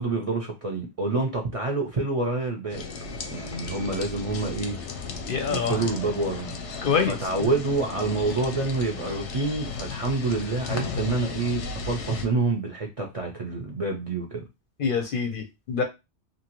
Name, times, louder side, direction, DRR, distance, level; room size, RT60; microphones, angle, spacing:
voice 1, 0.0-2.9 3.3-4.8 5.5-14.4, right 3 dB, 40° right, 0.5 m, -27 dB
sound 1, 2.7-12.3, left 4 dB, 90° left, 0.9 m, -35 dB
voice 2, 5.3-5.8 6.8-7.2 14.8-15.8, left 6 dB, 60° left, 0.6 m, -25 dB
2.8 x 2.6 x 2.9 m
omnidirectional pair, 1.2 m